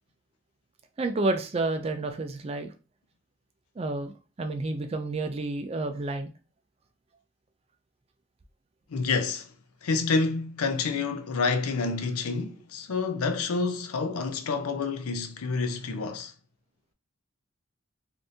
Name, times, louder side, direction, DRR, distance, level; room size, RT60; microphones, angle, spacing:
voice 1, 1.0-2.7 3.8-4.1 4.4-6.3, right 2 dB, 25° right, 0.3 m, -30 dB
voice 2, 8.9-9.5 9.8-16.3, left 4 dB, 85° left, 0.5 m, -28 dB
3.5 x 2.6 x 2.6 m
head